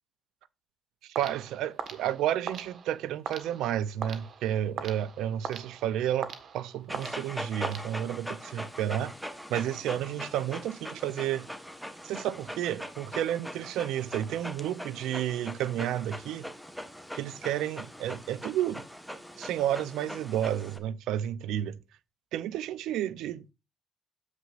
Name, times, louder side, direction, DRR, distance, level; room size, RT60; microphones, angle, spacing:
sound 1, 1.1-8.4, right 6 dB, 60° right, 1.4 m, -42 dB
voice 1, 1.2-9.1 9.5-11.5 12.0-16.5 17.1-18.8 19.4-21.8 22.3-23.5, right 11 dB, 90° right, 0.5 m, -31 dB
Dog, 6.9-20.8, equal, ahead, 1.1 m, -41 dB
9.5 x 7.4 x 2.4 m
cardioid pair, 90°, 0 cm